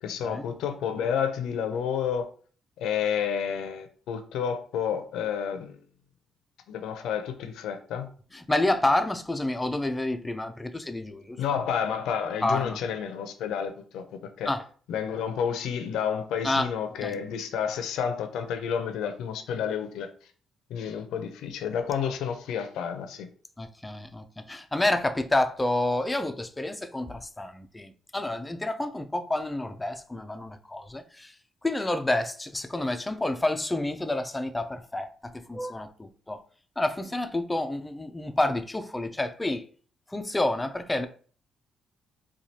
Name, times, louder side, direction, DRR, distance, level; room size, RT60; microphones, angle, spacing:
voice 1, 0.0-2.3 2.8-5.8 6.7-8.1 11.4-14.5 14.9-20.1 20.7-23.3, left 7 dB, 85° left, 0.6 m, -30 dB
voice 2, 8.3-11.4 12.4-12.8 14.5-14.6 16.4-16.7 17.0-17.2 23.6-31.3 31.6-36.4 36.8-39.6 40.1-41.1, left 2 dB, 15° left, 0.5 m, -29 dB
4.5 x 2.3 x 2.8 m
cardioid pair, 90°, 0 cm